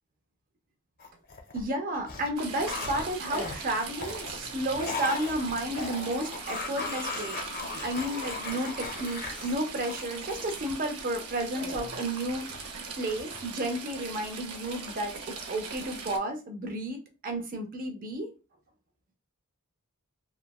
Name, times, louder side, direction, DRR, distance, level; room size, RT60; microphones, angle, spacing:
sound 1, 1.0-1.6 1.9-10.6 11.6-12.7 13.0-13.4, left 4 dB, 40° left, 0.6 m, -38 dB
voice 1, 1.5-7.4 7.8-12.7 13.0-18.3, right 1 dB, 40° right, 4 dB, 0.5 m, -32 dB
Stream / Trickle dribble, 2.4-16.2, right 4 dB, 80° right, 0.6 m, -40 dB
3.1 x 2.1 x 2.3 m, 0.31 s
head